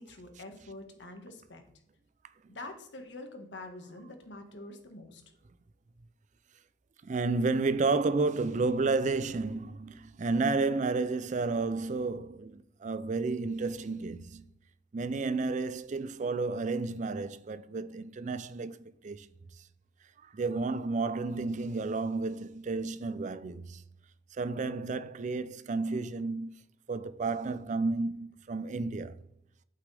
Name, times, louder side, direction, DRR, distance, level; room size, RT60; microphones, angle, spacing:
voice 1, 0.0-1.6 2.5-5.2, left 2 dB, 75° left, 1.7 m, -45 dB
voice 2, 7.0-14.5 14.9-18.8 19.0-19.3 20.2-23.8 24.3-26.6 26.9-29.2, right 3 dB, 40° right, 0.4 m, -31 dB
8.3 x 8.3 x 3.4 m
head